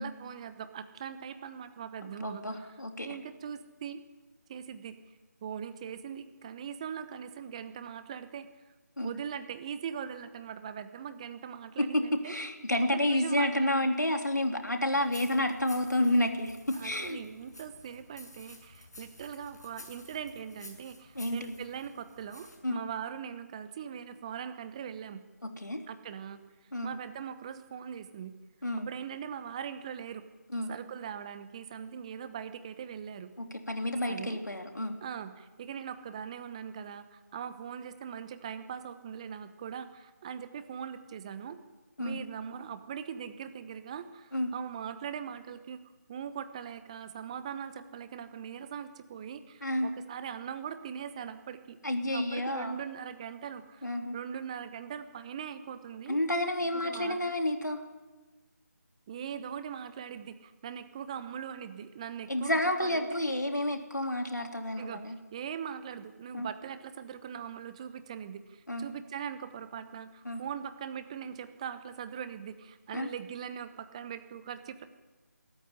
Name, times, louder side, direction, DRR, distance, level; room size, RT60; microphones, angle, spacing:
voice 1, 0.0-4.0 4.5-5.0 5.4-8.5 9.0-12.3 12.9-13.9 16.7-25.2 25.9-26.4 26.8-28.3 28.8-30.2 30.7-33.3 34.1-34.4 35.0-41.6 42.0-45.8 46.1-51.8 52.1-56.2 56.8-57.2 59.1-63.2 64.8-65.0 65.3-74.9, right 8 dB, 20° right, 11 dB, 1.1 m, -41 dB
voice 2, 2.2-3.1 9.0-9.1 11.8-17.2 21.1-21.6 22.6-22.8 25.4-25.8 26.7-26.9 28.6-28.9 30.5-30.7 33.4-35.0 42.0-42.2 44.3-44.5 49.6-49.9 51.8-52.8 53.8-54.2 56.1-57.8 62.3-65.2 66.3-66.5 68.7-68.9 70.2-70.4 72.9-73.1, left 1 dB, 90° left, 4 dB, 3.2 m, -30 dB
sound 1, 14.9-22.6, left 2 dB, 70° left, 6.7 m, -52 dB
21.5 x 14.0 x 9.9 m, 1.2 s
figure-of-eight pair, 160°, 9 cm